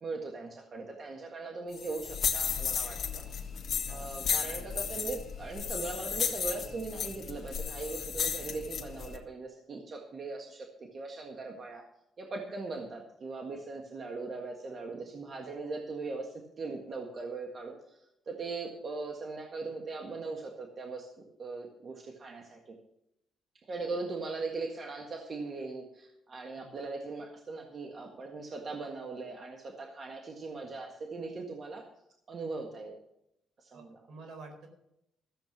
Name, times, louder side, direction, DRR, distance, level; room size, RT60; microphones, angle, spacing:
voice 1, 0.0-3.5 3.9-11.8 12.2-21.1 21.4-22.7 23.6-31.9 32.3-32.9 33.6-34.0, right 3 dB, 45° right, 2 dB, 1.7 m, -40 dB
sound 1, 1.7-9.2, left 7 dB, 55° left, 1.5 m, -34 dB
voice 2, 3.8-4.4 26.6-26.7 33.7-34.7, right 3 dB, 75° right, 4 dB, 4.0 m, -50 dB
14.0 x 7.8 x 6.0 m, 0.81 s
cardioid pair, 90°, 0 cm